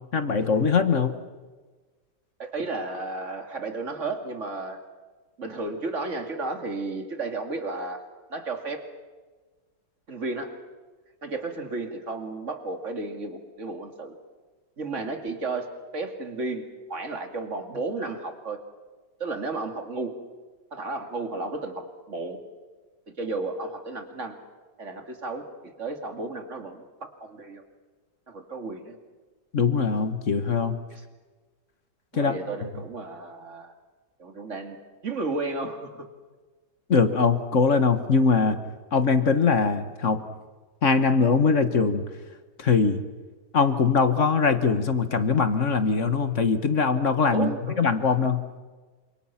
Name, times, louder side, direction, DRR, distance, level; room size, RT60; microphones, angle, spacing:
voice 1, 0.1-1.2 29.5-30.8 32.1-32.4 36.9-38.6 38.9-40.2 40.8-42.0 42.6-43.0 43.5-47.5 47.8-48.4, left 5 dB, 45° left, 9 dB, 1.7 m, -22 dB
voice 2, 2.4-4.8 5.4-8.0 8.3-8.8 10.1-10.5 11.2-14.2 14.8-15.7 15.9-18.6 19.2-20.2 20.7-22.4 23.2-24.4 24.8-26.8 27.2-27.6 28.3-29.0 30.9-31.0 32.1-33.7 34.2-34.8 35.0-36.1 47.3-47.8, right 3 dB, 45° right, 5 dB, 2.7 m, -33 dB
28.5 x 26.5 x 5.9 m, 1.3 s
omnidirectional pair, 1.9 m